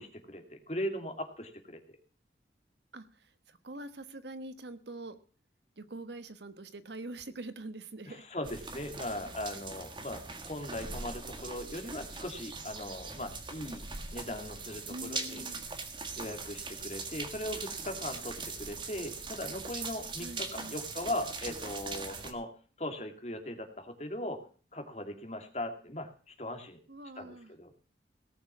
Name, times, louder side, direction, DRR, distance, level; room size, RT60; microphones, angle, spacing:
voice 1, 0.0-2.0 8.1-13.8 14.1-15.8 16.2-22.5 22.8-24.4 24.7-26.8 27.2-27.7, left 1 dB, 40° left, 5 dB, 2.4 m, -39 dB
voice 2, 2.9-5.2 5.8-8.3 14.9-15.7 20.2-20.8 26.9-27.5, right 2 dB, 75° right, 10 dB, 1.3 m, -44 dB
sound 1, 8.4-22.3, right 4 dB, 25° right, 1.7 m, -41 dB
18.0 x 6.6 x 7.2 m, 0.41 s
head